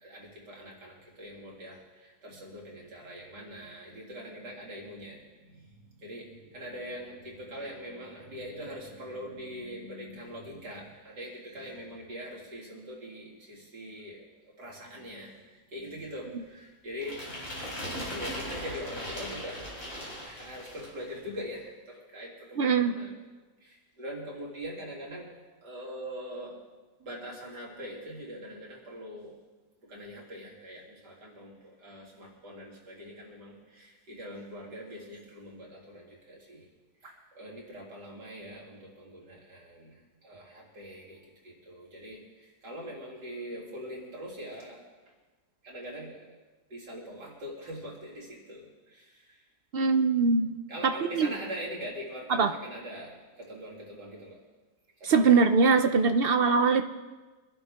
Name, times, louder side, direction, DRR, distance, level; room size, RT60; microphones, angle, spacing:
voice 1, 0.0-5.2 6.0-14.2 14.6-15.4 15.7-17.2 18.0-19.6 20.2-23.1 23.6-25.3 25.6-26.6 27.0-29.3 29.9-36.7 37.0-39.9 40.2-42.2 42.6-44.8 45.6-46.2 46.7-48.6 48.9-49.0 50.7-54.4 55.0-55.5 56.0-56.2, equal, 80° right, -3 dB, 3.6 m, -42 dB
sound 1, 17.0-21.0, equal, 35° left, 5.0 m, -38 dB
voice 2, 22.6-22.9 49.7-50.5 51.1-51.3 52.3-52.5 55.0-56.8, right 4 dB, 65° right, 7 dB, 0.5 m, -22 dB
24.5 x 11.0 x 3.6 m, 1.3 s
omnidirectional pair, 1.8 m